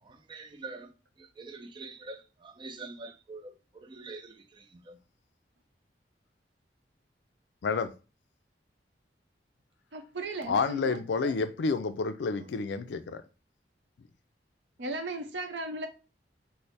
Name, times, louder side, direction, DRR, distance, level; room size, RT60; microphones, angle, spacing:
voice 1, 0.0-5.0 12.4-12.5, right 3 dB, 25° right, 0.4 m, -45 dB
voice 2, 7.6-7.9 10.5-13.2, left 4 dB, 75° left, 0.4 m, -29 dB
voice 3, 9.9-11.3 14.8-15.9, right 2 dB, 80° right, 0.6 m, -36 dB
3.2 x 2.0 x 4.0 m
head